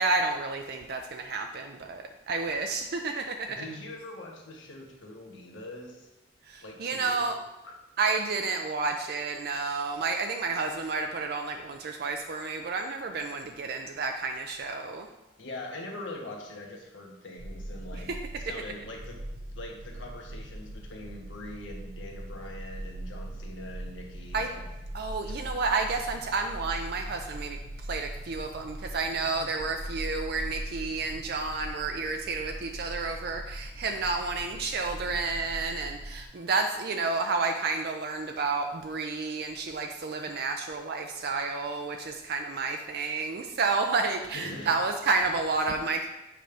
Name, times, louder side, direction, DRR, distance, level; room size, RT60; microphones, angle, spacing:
voice 1, 0.0-3.6 6.5-7.4 8.0-15.1 17.9-18.0 24.3-24.5 24.9-27.6 27.9-46.1, right 4 dB, 55° right, 4 dB, 0.4 m, -30 dB
voice 2, 3.5-6.1 6.6-7.3 7.6-7.7 15.4-18.1 18.4-19.2 19.5-24.6 25.0-25.4 29.2-29.3 44.3-44.7, left 2 dB, 70° left, 0 dB, 1.3 m, -43 dB
sound 1, 17.4-36.2, right 1 dB, 90° right, 1.1 m, -41 dB
7.7 x 5.2 x 3.4 m, 0.96 s
head